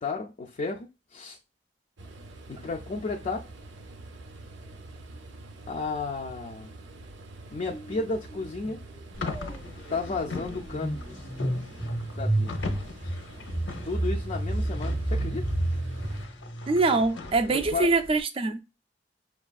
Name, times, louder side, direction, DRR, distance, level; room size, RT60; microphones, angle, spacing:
voice 1, 0.0-1.4 2.5-3.5 5.7-6.8 7.5-8.8 9.9-11.0 12.2-12.5 13.8-15.5 17.5-17.9, left 3 dB, 40° left, 0.4 m, -33 dB
sound 1, 2.0-16.3, right 2 dB, 80° right, 0.6 m, -45 dB
sound 2, 7.7-8.0 8.3-17.1, right 1 dB, ahead, 0.7 m, -31 dB
sound 3, 9.1-18.2, left 3 dB, 85° left, 0.7 m, -40 dB
voice 2, 16.7-18.6, right 3 dB, 30° right, 0.4 m, -24 dB
5.7 x 2.4 x 2.3 m
head